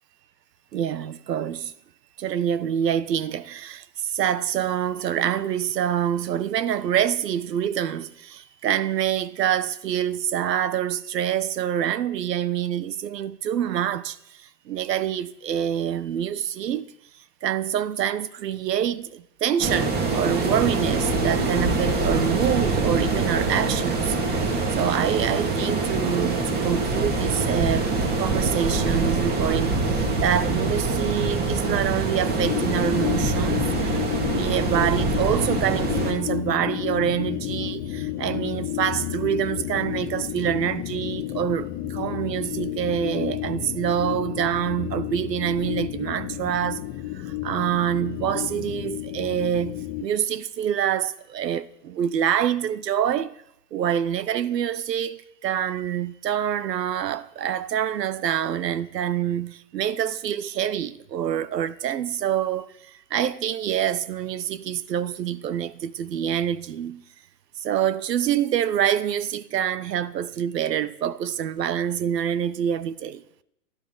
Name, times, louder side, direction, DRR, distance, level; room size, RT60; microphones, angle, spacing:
voice 1, 0.7-1.7 2.2-14.2 14.7-16.9 17.4-24.5 24.7-27.9 28.2-34.0 34.3-46.8 47.1-53.3 53.7-62.7 63.1-67.0 67.6-73.2, right 9 dB, 85° right, 1.2 m, -26 dB
sound 1, 19.6-36.1, right 3 dB, 20° right, 2.4 m, -24 dB
sound 2, 32.4-50.0, left 13 dB, 30° left, 1.2 m, -31 dB
22.0 x 13.0 x 4.0 m
hypercardioid pair, 150°, 48 cm